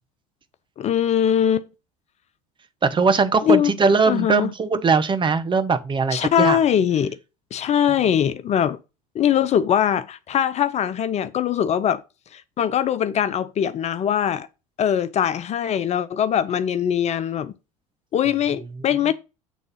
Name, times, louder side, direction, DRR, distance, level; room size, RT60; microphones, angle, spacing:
voice 1, 0.8-1.7 3.4-3.7 4.1-4.5 6.1-7.2 7.5-8.8 9.1-12.0 12.3-14.5 14.8-17.5 18.1-19.1, left 9 dB, 40° left, 0.6 m, -21 dB
voice 2, 2.8-6.6, right 4 dB, 30° right, 1.1 m, -20 dB
8.2 x 3.6 x 5.6 m
hypercardioid pair, 70°, 18 cm